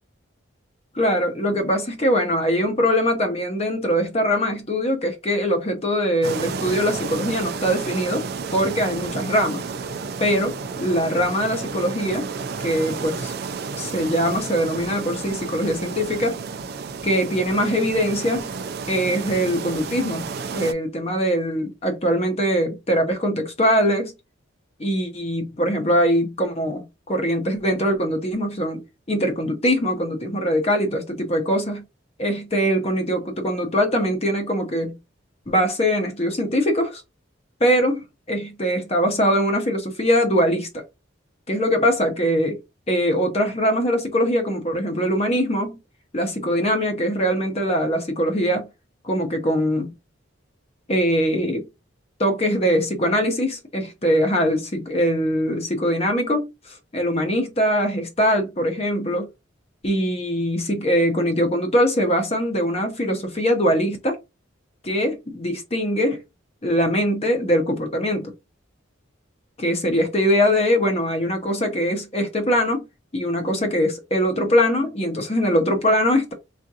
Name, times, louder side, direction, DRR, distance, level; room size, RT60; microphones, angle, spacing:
voice 1, 0.9-8.2 8.5-9.6 10.2-12.3 12.6-13.3 13.8-16.4 17.0-18.5 18.9-24.1 24.8-31.8 32.2-35.0 35.5-37.0 37.6-40.8 41.5-42.6 42.9-45.8 46.1-48.7 49.0-49.9 50.9-51.7 52.2-59.3 59.8-64.2 64.8-66.2 66.6-68.3 69.6-72.8 73.1-76.3, equal, 30° left, 0.8 m, -22 dB
sound 1, 6.2-20.7, right 5 dB, 55° right, 0.4 m, -31 dB
3.5 x 2.5 x 2.7 m
head